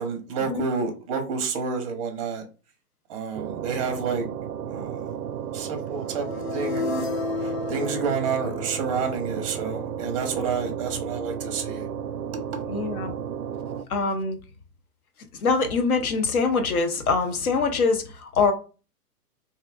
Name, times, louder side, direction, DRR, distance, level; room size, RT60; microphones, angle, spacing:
voice 1, 0.0-2.4 3.1-4.3 4.7-5.2 5.5-6.8 7.4-11.9, right 5 dB, 20° right, 0.6 m, -29 dB
sound 1, 3.3-13.8, right 9 dB, 85° right, 0.5 m, -33 dB
sound 2, 5.9-9.9, left 3 dB, 40° left, 0.7 m, -32 dB
voice 2, 12.7-13.1 13.9-14.4 15.4-18.5, left 4 dB, 65° left, 1.0 m, -24 dB
3.5 x 2.8 x 2.4 m
hypercardioid pair, 135°, 47 cm